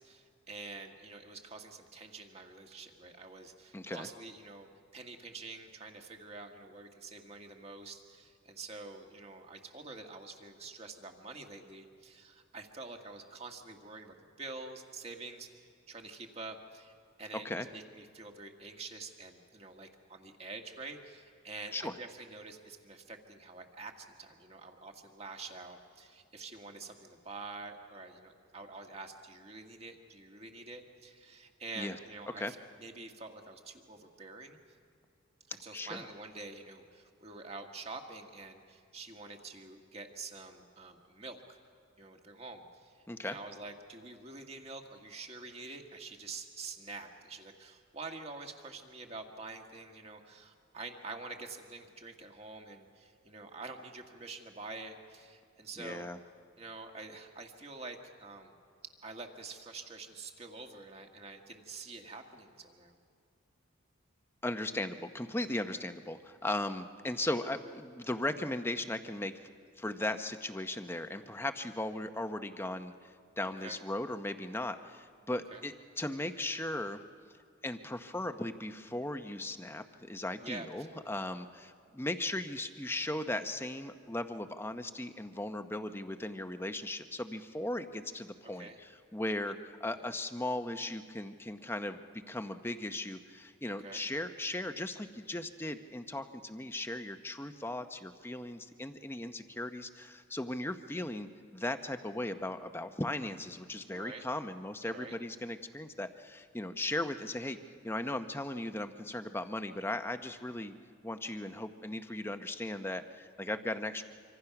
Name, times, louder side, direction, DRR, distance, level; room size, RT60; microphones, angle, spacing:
voice 1, 0.0-16.9 17.2-34.6 35.5-41.6 42.0-56.0 56.6-58.5 59.0-63.0 73.4-73.8 75.3-75.6 80.4-81.1 88.5-88.8 89.9-90.0 93.7-94.0 103.9-104.2 104.9-105.2, right 3 dB, 30° right, 3 dB, 1.7 m, -47 dB
voice 2, 3.7-4.1 17.4-17.7 21.7-21.9 31.8-32.0 32.4-32.5 35.7-36.0 43.1-43.4 55.8-56.2 64.4-69.3 69.8-77.0 77.6-92.0 92.3-107.6 107.8-110.7 111.0-114.0, left 1 dB, 10° left, 8 dB, 0.8 m, -37 dB
26.0 x 25.0 x 5.9 m, 2.3 s
head